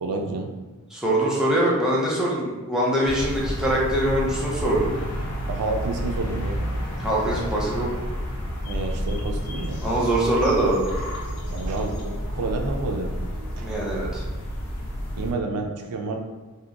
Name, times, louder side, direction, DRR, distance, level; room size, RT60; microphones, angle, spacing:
voice 1, 0.0-0.5 5.5-6.6 8.7-9.8 11.3-13.1 13.6-13.7 15.2-16.2, right 3 dB, 85° right, 3 dB, 0.4 m, -29 dB
voice 2, 0.9-4.9 7.0-7.9 9.8-10.9 13.6-14.2, right 1 dB, 5° right, -6 dB, 0.5 m, -23 dB
sound 1, 3.0-15.3, equal, 90° left, 0.5 m, -30 dB
2.8 x 2.1 x 2.4 m, 1.2 s
head